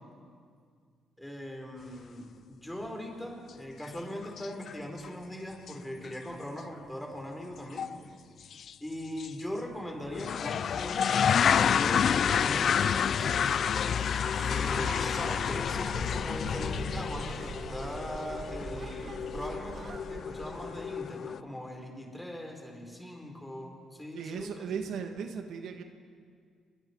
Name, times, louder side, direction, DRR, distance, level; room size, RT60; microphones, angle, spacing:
voice 1, 1.2-7.9 8.8-13.6 14.5-24.7, left 1 dB, 5° left, 1 dB, 4.5 m, -40 dB
sound 1, 3.8-3.9 4.2-4.7 5.0-5.1 5.7-5.8 6.0-6.1 7.8-8.0 8.5-8.7 9.2-9.3 10.1-21.4, left 7 dB, 55° left, 0.4 m, -29 dB
sound 2, 12.8-21.0, right 4 dB, 50° right, 1.4 m, -43 dB
voice 2, 24.1-25.8, right 6 dB, 75° right, 5 dB, 1.6 m, -37 dB
26.5 x 23.0 x 4.7 m, 2.1 s
cardioid pair, 90°, 0 cm